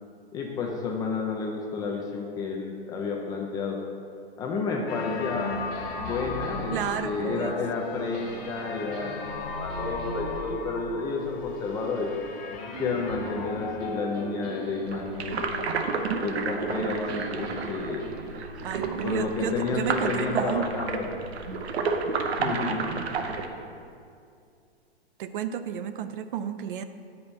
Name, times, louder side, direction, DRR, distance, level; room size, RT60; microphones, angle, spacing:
voice 1, 0.3-3.8 4.4-5.5 6.0-9.2 9.6-12.1 12.8-15.6 16.2-18.1 19.0-21.1 22.4-23.0, left 4 dB, 10° left, 0 dB, 0.3 m, -31 dB
sound 1, 4.9-15.0, left 3 dB, 45° left, 1.1 m, -36 dB
sound 2, 5.7-12.2 12.7-16.8 17.1-22.8, right 3 dB, 30° right, 0.9 m, -44 dB
voice 2, 6.7-7.5 18.6-20.7 25.2-26.8, right 9 dB, 55° right, 11 dB, 0.5 m, -31 dB
sound 3, 14.8-23.5, right 4 dB, 75° right, 0.8 m, -31 dB
8.3 x 5.3 x 4.4 m, 2.4 s
hypercardioid pair, 125°, 32 cm